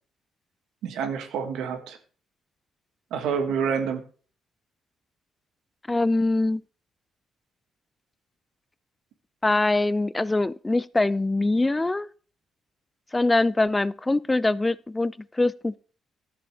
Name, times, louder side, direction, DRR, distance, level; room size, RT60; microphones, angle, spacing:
voice 1, 0.8-2.0 3.1-4.0, right 6 dB, 85° right, 1.3 m, -28 dB
voice 2, 5.9-6.6 9.4-12.1 13.1-15.8, left 2 dB, 15° left, 0.3 m, -23 dB
12.0 x 7.5 x 3.5 m
cardioid pair, 90°, 0 cm